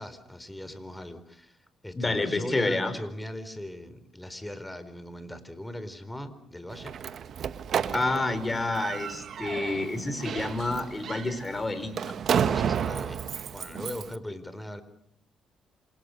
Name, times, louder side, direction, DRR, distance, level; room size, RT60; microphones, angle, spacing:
voice 1, 0.0-1.6 1.8-6.9 12.3-14.8, left 1 dB, 5° left, 12 dB, 4.2 m, -39 dB
voice 2, 1.9-2.9 7.9-12.1, left 2 dB, 20° left, 11 dB, 5.3 m, -29 dB
Slam, 6.7-14.2, right 8 dB, 60° right, 1.4 m, -32 dB
28.5 x 26.5 x 6.6 m, 0.67 s
cardioid pair, 90°, 0 cm